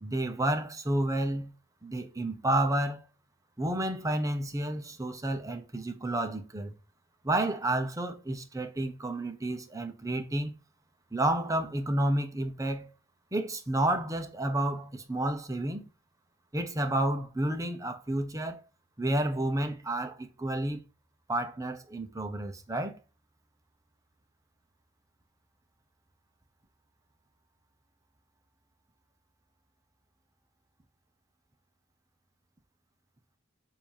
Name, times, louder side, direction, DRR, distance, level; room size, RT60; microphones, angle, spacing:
voice 1, 0.0-1.5 1.8-3.1 3.6-6.7 7.2-10.5 11.1-12.9 13.3-15.9 16.5-18.6 19.0-20.8 21.3-23.0, right 1 dB, 15° right, 0.9 m, -30 dB
7.6 x 2.8 x 5.5 m
head